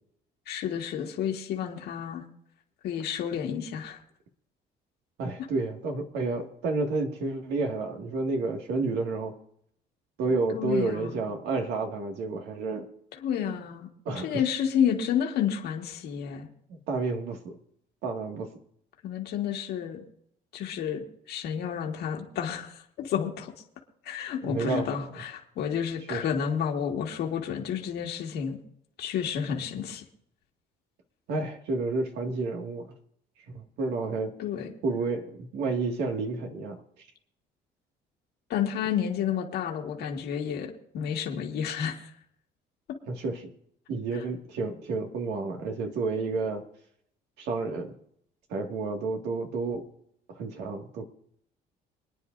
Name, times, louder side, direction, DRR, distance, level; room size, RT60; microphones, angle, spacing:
voice 1, 0.5-2.2 2.8-4.0 10.5-11.3 13.2-13.9 14.2-16.5 19.0-20.0 20.5-23.5 24.0-28.6 29.0-30.0 34.4-34.7 38.5-42.1, left 8 dB, 75° left, 1 dB, 1.9 m, -30 dB
voice 2, 5.2-9.4 10.2-12.9 14.1-14.4 16.7-17.6 18.0-18.5 24.4-25.0 26.1-26.2 31.3-32.9 33.5-34.4 34.8-36.8 43.1-43.5 43.9-46.6 47.4-47.9 48.5-49.9 50.3-51.1, right 3 dB, 80° right, 3 dB, 2.1 m, -30 dB
26.0 x 9.8 x 2.6 m, 0.69 s
cardioid pair, 110°, 17 cm